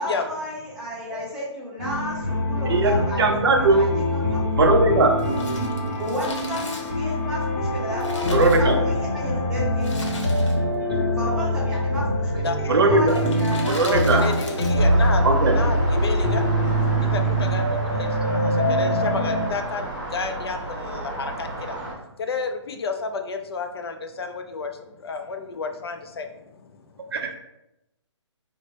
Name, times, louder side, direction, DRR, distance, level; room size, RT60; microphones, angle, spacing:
voice 1, 0.0-4.4 6.0-10.0 11.1-12.5 12.8-13.8 14.1-14.8 15.4-15.8, equal, 5° right, -8 dB, 0.8 m, -33 dB
sound 1, 1.8-19.5, left 1 dB, 35° left, 0.8 m, -24 dB
voice 2, 2.7-3.9 4.6-5.1 8.2-8.8 12.7-13.2 13.7-14.2 15.2-15.6 27.1-27.3, right 3 dB, 55° right, 4 dB, 0.6 m, -19 dB
Crumpling crinkling, 5.1-9.1 9.8-10.8 11.1-11.2 12.0-12.3 13.0-14.9 15.2-15.3, left 2 dB, 85° left, 1.0 m, -39 dB
voice 3, 13.8-15.2 15.5-16.5 17.0-21.8 22.2-24.7 25.0-26.3 26.8-26.9, left 4 dB, 55° left, 6 dB, 0.4 m, -31 dB
sound 2, 14.8-21.9, right 1 dB, 40° right, 1.2 m, -26 dB
3.3 x 2.1 x 4.0 m, 0.88 s
hypercardioid pair, 160°, 16 cm